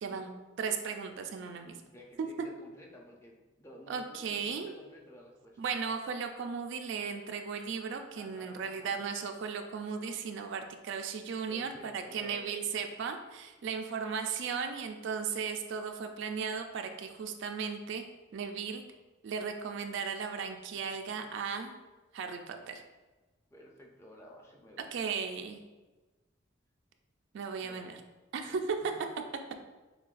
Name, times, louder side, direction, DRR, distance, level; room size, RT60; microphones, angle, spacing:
voice 1, 0.0-1.8 3.9-4.7 5.6-18.0 18.3-18.8 19.2-21.7 22.1-22.8 24.9-25.6 27.3-28.0 28.3-28.8, right 6 dB, 60° right, 6 dB, 0.3 m, -36 dB
voice 2, 1.7-5.6 8.1-9.0 11.5-12.8 14.4-14.7 20.7-21.0 21.3-21.4 23.5-24.9 27.6-28.1 28.4-28.6, equal, 15° left, -1 dB, 0.5 m, -53 dB
6.3 x 2.2 x 2.4 m, 1.2 s
head